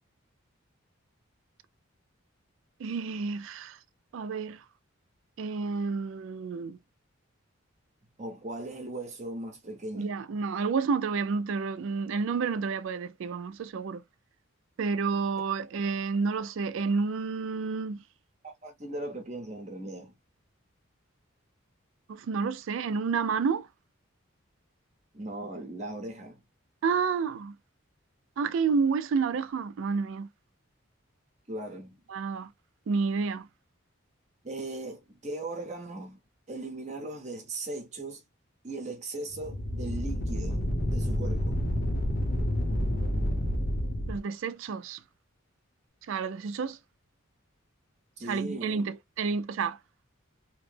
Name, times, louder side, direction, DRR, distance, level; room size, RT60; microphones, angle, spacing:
voice 1, 2.8-3.8 4.1-4.6 5.4-6.8 9.9-14.0 14.8-18.0 22.1-23.7 26.8-27.6 28.4-30.3 32.1-32.5 32.9-33.5 44.1-45.0 46.1-46.8 48.2-49.8, right 5 dB, 65° right, 0.3 m, -30 dB
voice 2, 8.2-10.1 18.4-20.1 25.1-26.4 31.5-32.0 34.4-36.2 36.5-38.2 38.6-41.6 48.2-48.9, right 2 dB, 35° right, 0.8 m, -38 dB
sound 1, 39.3-44.2, equal, 40° left, 0.7 m, -29 dB
3.0 x 2.0 x 3.2 m
head